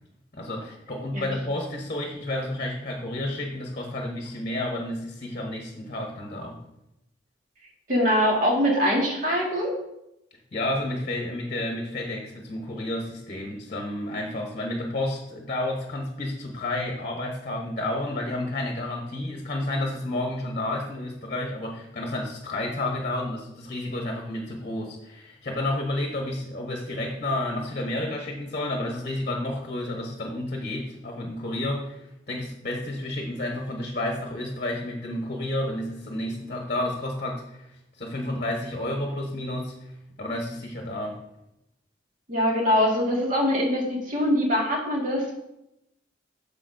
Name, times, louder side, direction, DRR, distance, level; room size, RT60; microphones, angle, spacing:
voice 1, 0.3-6.6 10.5-39.9 40.2-41.2, left 1 dB, 40° left, 0 dB, 1.0 m, -31 dB
voice 2, 7.9-9.7 42.3-45.3, equal, 45° right, -2 dB, 1.8 m, -23 dB
9.8 x 6.7 x 2.6 m, 0.88 s
head